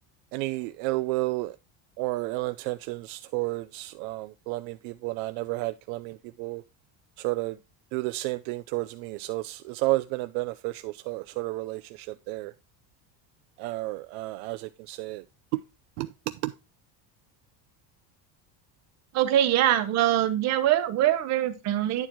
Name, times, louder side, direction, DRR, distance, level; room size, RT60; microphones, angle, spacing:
voice 1, 0.3-1.6 2.0-6.6 7.2-7.6 7.9-12.5 13.6-15.2 15.5-15.6 16.0-16.1 16.4-16.5, right 20 dB, 75° right, 0.5 m, -31 dB
voice 2, 19.1-22.1, right 12 dB, 40° right, 0.9 m, -23 dB
9.5 x 4.5 x 4.3 m
cardioid pair, 180°, 42 cm